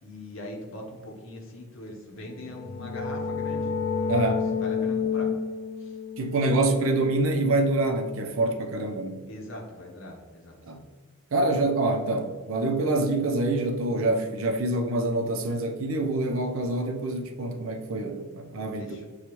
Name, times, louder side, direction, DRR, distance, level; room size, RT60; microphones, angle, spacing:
voice 1, 0.0-3.7 4.6-5.3 5.8-5.9 9.3-10.5 18.8-19.0, left 1 dB, 65° left, 0 dB, 0.8 m, -41 dB
sound 1, 2.3-7.9, left 6 dB, 40° left, 0.4 m, -30 dB
voice 2, 4.1-4.4 6.2-9.2 10.7-10.8 11.3-19.0, right 2 dB, 70° right, 4 dB, 0.5 m, -26 dB
6.7 x 2.3 x 3.0 m, 1.5 s
head